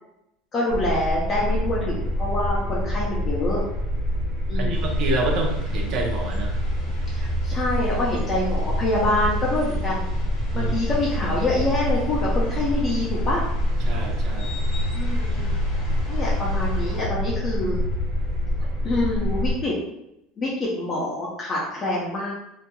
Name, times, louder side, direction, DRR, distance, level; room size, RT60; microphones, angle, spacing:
voice 1, 0.5-3.6 4.5-4.9 7.1-10.0 10.5-13.4 14.9-15.5 16.1-17.8 18.8-19.7 20.4-22.3, left 2 dB, 25° left, -6 dB, 0.6 m, -26 dB
sound 1, 0.7-19.5, equal, 25° right, 1.2 m, -26 dB
voice 2, 4.5-6.5 10.5-10.7 13.8-14.5, right 2 dB, 50° right, 1 dB, 0.7 m, -28 dB
sound 2, 4.7-17.0, right 1 dB, 65° left, 1.1 m, -36 dB
3.0 x 2.7 x 2.2 m, 0.83 s
cardioid pair, 145°, 0 cm